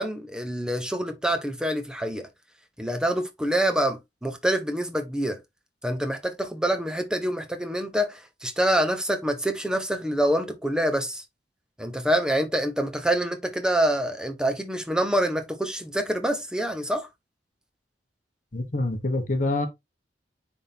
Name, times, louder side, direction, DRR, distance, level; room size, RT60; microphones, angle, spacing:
voice 1, 0.0-2.3 2.8-5.4 5.8-11.2 11.8-17.1, right 1 dB, 5° right, 0.9 m, -26 dB
voice 2, 18.5-19.7, left 2 dB, 45° left, 1.1 m, -26 dB
9.7 x 3.6 x 2.8 m
head